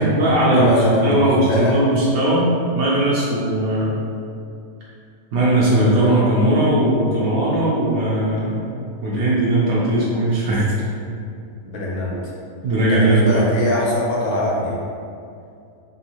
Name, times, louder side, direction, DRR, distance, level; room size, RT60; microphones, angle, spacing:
voice 1, 0.0-2.5 2.7-4.0 5.3-10.7 12.6-13.4, right 1 dB, 75° right, -7 dB, 1.2 m, -18 dB
voice 2, 0.5-1.8 11.6-12.2 12.8-14.8, left 1 dB, 60° left, -4 dB, 0.8 m, -22 dB
3.6 x 2.5 x 2.8 m, 2.4 s
omnidirectional pair, 1.9 m